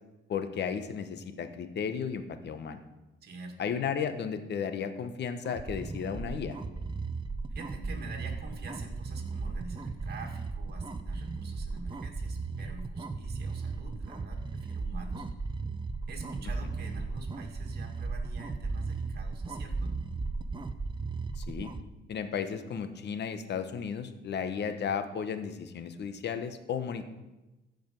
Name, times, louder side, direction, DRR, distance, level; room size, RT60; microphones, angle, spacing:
voice 1, 0.3-2.8 3.6-6.6 21.4-21.7 22.1-27.0, left 7 dB, 60° left, 9 dB, 1.0 m, -34 dB
voice 2, 3.2-3.6 7.5-15.3 16.1-20.0, right 3 dB, 55° right, 3 dB, 2.1 m, -46 dB
sound 1, 5.4-21.8, right 4 dB, 25° right, 0.6 m, -36 dB
14.5 x 5.3 x 5.2 m, 1.0 s
cardioid pair, 90°, 20 cm